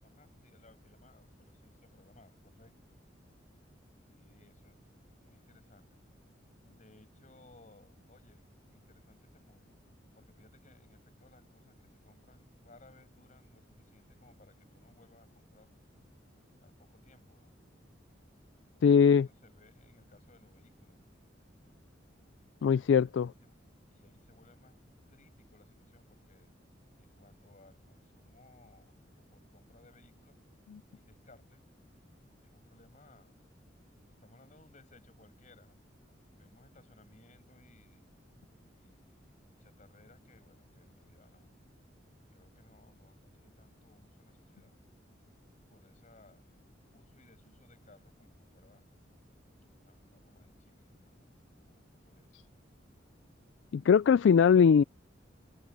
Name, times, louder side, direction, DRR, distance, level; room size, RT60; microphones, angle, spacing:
voice 1, 0.0-3.0 4.1-4.8 5.2-6.0 6.6-9.8 10.1-15.7 16.6-17.5 18.6-21.0 22.7-23.6 23.9-24.8 25.1-26.5 27.0-30.4 30.9-31.6 32.4-33.4 33.9-35.8 36.3-38.2 38.7-41.5 42.3-44.7 45.7-46.5 46.9-48.9 49.7-52.4, left 2 dB, 40° left, 6.3 m, -62 dB
voice 2, 18.8-19.3 22.6-23.3 53.7-54.8, left 6 dB, 70° left, 0.3 m, -21 dB
head